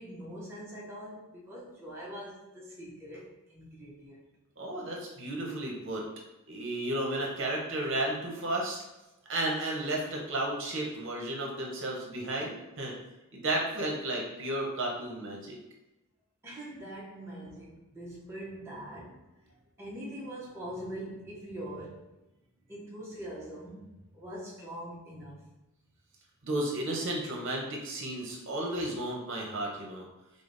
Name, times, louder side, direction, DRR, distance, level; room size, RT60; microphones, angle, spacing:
voice 1, 0.0-4.2 16.4-19.5 19.8-22.2 22.7-25.5, right 1 dB, 10° right, -7 dB, 0.5 m, -43 dB
voice 2, 4.6-6.0 6.5-8.8 9.3-13.0 13.3-15.6 26.4-30.1, right 1 dB, 55° right, -2 dB, 0.7 m, -33 dB
4.9 x 2.0 x 2.5 m, 0.98 s
head